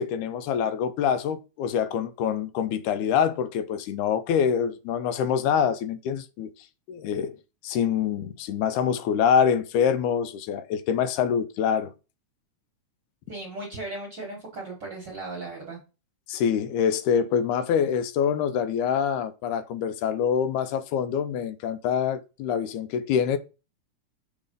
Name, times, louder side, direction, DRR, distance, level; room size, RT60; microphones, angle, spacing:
voice 1, 0.0-6.5 6.9-7.3 7.6-11.9 16.3-23.4, left 7 dB, 85° left, 2.1 m, -25 dB
voice 2, 13.3-15.8, right 2 dB, 50° right, 1.4 m, -36 dB
6.2 x 3.0 x 5.1 m
omnidirectional pair, 3.4 m